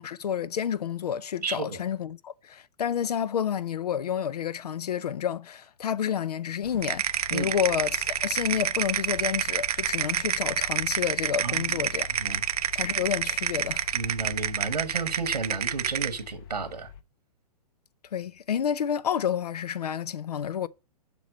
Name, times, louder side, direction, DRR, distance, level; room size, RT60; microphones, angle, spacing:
voice 1, 0.0-12.1 12.7-13.9 18.1-20.7, left 8 dB, 75° left, 0.5 m, -29 dB
voice 2, 1.4-1.8 7.3-7.5 11.4-11.8 12.2-12.4 13.9-16.9, right 4 dB, 90° right, 1.4 m, -32 dB
sound 1, 6.6-17.0, left 8 dB, 35° left, 0.9 m, -45 dB
sound 2, 6.8-16.2, right 10 dB, 70° right, 0.5 m, -28 dB
7.0 x 6.0 x 6.2 m
hypercardioid pair, 125°, 20 cm